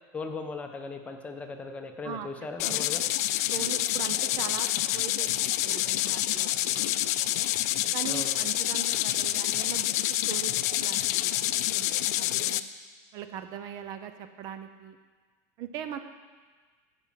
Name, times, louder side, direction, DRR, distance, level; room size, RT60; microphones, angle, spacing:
voice 1, 0.1-3.0 8.1-8.4, left 4 dB, 15° left, 4 dB, 0.9 m, -38 dB
sound 1, 2.6-12.6, left 14 dB, 70° left, 0.4 m, -27 dB
voice 2, 3.5-7.5 7.9-12.6 13.1-15.0 15.6-16.0, right 9 dB, 45° right, 9 dB, 0.7 m, -40 dB
12.0 x 5.4 x 7.4 m, 1.4 s
supercardioid pair, 140°, 9 cm